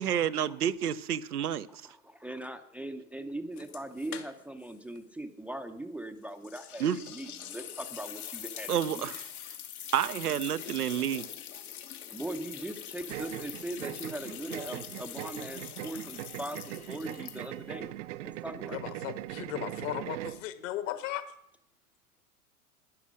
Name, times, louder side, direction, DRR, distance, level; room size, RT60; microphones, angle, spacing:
voice 1, 0.0-1.8 6.8-7.0 8.7-9.3 9.9-11.2, right 9 dB, 90° right, 0.7 m, -29 dB
voice 2, 1.7-9.1 12.1-17.9 18.2-18.9, right 1 dB, 5° right, 0.6 m, -40 dB
sound 1, 3.6-4.7 4.9-5.0 6.4-17.7, left 10 dB, 75° left, 1.6 m, -43 dB
sound 2, 13.1-20.4, right 15 dB, 55° right, 0.5 m, -40 dB
voice 3, 18.7-21.2, left 13 dB, 55° left, 1.6 m, -36 dB
11.5 x 10.0 x 6.3 m
hypercardioid pair, 110°, 44 cm